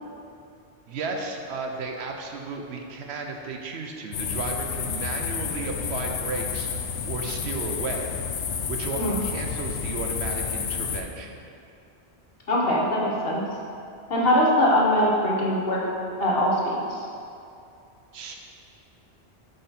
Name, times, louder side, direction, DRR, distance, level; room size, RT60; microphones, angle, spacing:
voice 1, 0.9-6.7 7.0-8.3 8.7-11.4 18.1-18.4, right 3 dB, 75° right, 3 dB, 0.9 m, -34 dB
sound 1, 4.1-11.0, left 6 dB, 85° left, 0.9 m, -30 dB
voice 2, 12.5-13.4 14.1-15.8 16.2-17.0, left 1 dB, 60° left, -3 dB, 1.2 m, -22 dB
7.6 x 4.0 x 4.2 m, 2.5 s
omnidirectional pair, 1.1 m